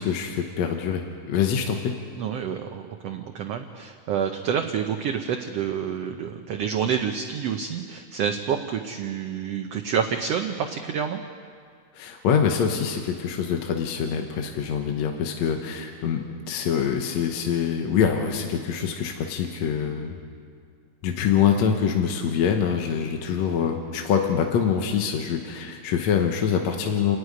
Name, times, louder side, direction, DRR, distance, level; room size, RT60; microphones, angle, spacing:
voice 1, 0.0-2.0 11.9-20.2 21.0-27.2, left 7 dB, 65° left, 4 dB, 2.2 m, -25 dB
voice 2, 2.2-11.2, right 7 dB, 65° right, 4 dB, 1.6 m, -28 dB
29.0 x 11.0 x 9.6 m, 2.2 s
omnidirectional pair, 3.6 m